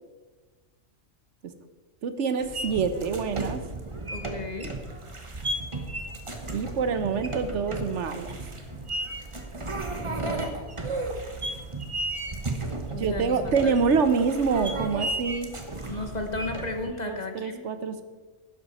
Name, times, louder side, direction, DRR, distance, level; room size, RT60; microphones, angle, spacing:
voice 1, 2.0-3.6 6.5-8.4 13.0-15.5 17.0-18.0, right 5 dB, 70° right, 10 dB, 1.1 m, -26 dB
sound 1, 2.4-16.8, right 2 dB, 25° right, 1.2 m, -34 dB
voice 2, 4.1-4.7 12.9-13.7 15.9-17.6, left 2 dB, 35° left, 5 dB, 1.1 m, -34 dB
12.0 x 10.5 x 4.2 m, 1.3 s
omnidirectional pair, 1.3 m